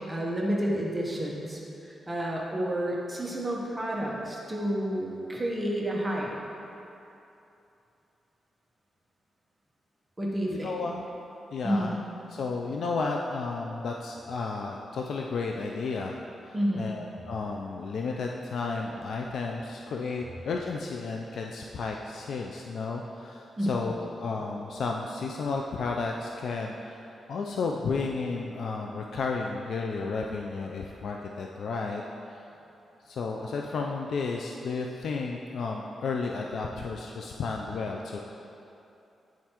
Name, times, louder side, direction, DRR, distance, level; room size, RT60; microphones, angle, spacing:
voice 1, 0.0-6.4 10.2-10.7 11.6-12.0 16.5-17.0 23.6-23.8, equal, 15° right, -3 dB, 0.9 m, -30 dB
voice 2, 10.5-11.0 11.5-12.0 12.3-16.2 16.4-27.0 27.3-32.0 32.3-32.4 33.1-38.2, left 4 dB, 70° left, 0 dB, 0.3 m, -32 dB
9.3 x 4.4 x 2.9 m, 2.8 s
cardioid pair, 105°, 0 cm